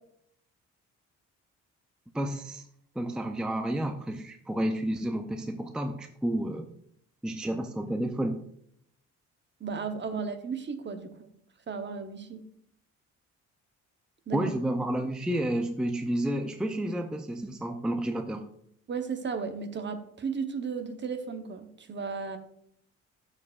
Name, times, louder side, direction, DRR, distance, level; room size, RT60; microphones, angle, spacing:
voice 1, 2.1-2.7 3.0-6.7 7.2-8.4 14.3-18.5, right 1 dB, 5° right, 5 dB, 0.4 m, -30 dB
voice 2, 9.6-11.3 11.7-12.4 14.3-14.4 18.9-22.4, right 5 dB, 40° right, 8 dB, 0.9 m, -35 dB
12.0 x 4.9 x 2.4 m, 0.71 s
cardioid pair, 90°, 30 cm